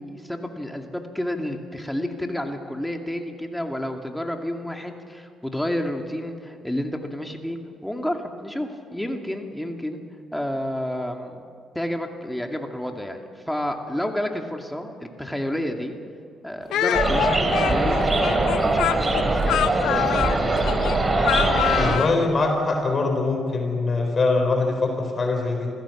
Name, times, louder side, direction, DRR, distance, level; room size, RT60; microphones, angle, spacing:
voice 1, 0.0-10.0 10.3-11.4 11.7-15.9 16.4-18.3 18.6-20.0 21.8-22.0, left 1 dB, 5° left, 4 dB, 2.3 m, -30 dB
Speech, 16.7-22.2, left 11 dB, 85° left, 0.8 m, -25 dB
sound 1, 16.9-22.0, right 2 dB, 25° right, 3.7 m, -22 dB
voice 2, 21.7-25.7, left 3 dB, 40° left, 3 dB, 3.8 m, -23 dB
26.0 x 16.5 x 7.3 m, 2.4 s
cardioid pair, 90°, 0 cm